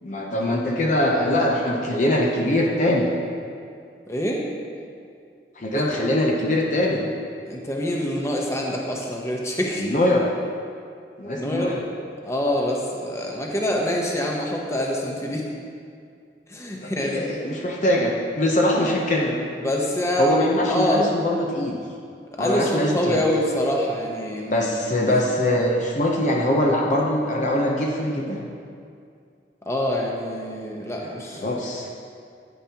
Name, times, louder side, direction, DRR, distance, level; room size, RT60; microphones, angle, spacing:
voice 1, 0.0-3.1 5.6-7.0 9.8-10.3 11.2-11.8 16.8-19.4 20.2-21.8 22.4-23.2 24.5-28.4 31.0-31.9, left 1 dB, 45° left, -1 dB, 0.7 m, -22 dB
voice 2, 4.1-4.4 5.7-5.8 7.5-9.8 11.3-11.8 12.2-15.5 16.5-17.4 18.8-18.9 19.6-21.0 22.4-24.7 29.7-31.6, left 1 dB, 15° left, -2 dB, 0.9 m, -25 dB
9.9 x 9.2 x 2.9 m, 2.4 s
head